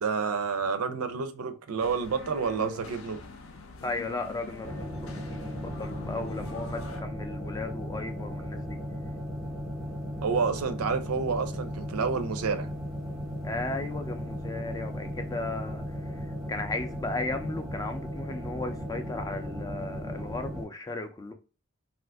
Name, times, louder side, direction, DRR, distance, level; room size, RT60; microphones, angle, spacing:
voice 1, 0.0-3.2 10.2-12.7, right 5 dB, 85° right, 0.5 m, -29 dB
sound 1, 1.8-7.0, left 4 dB, 70° left, 0.6 m, -44 dB
voice 2, 3.8-8.8 13.4-15.8 16.1-16.2 16.5-21.3, left 2 dB, 15° left, 0.3 m, -35 dB
sound 2, 4.6-20.6, equal, ahead, 0.8 m, -36 dB
2.7 x 2.4 x 3.4 m
head